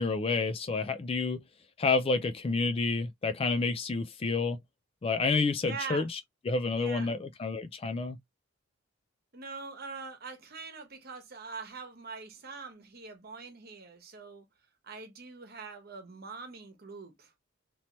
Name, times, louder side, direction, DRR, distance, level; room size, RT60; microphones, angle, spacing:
voice 1, 0.0-1.4 1.8-4.6 5.0-6.2 6.5-8.2, left 4 dB, 30° left, 0.3 m, -29 dB
voice 2, 5.6-6.1 6.8-7.1 9.3-14.5 14.8-17.3, right 5 dB, 50° right, 1.1 m, -43 dB
3.0 x 2.9 x 2.9 m
head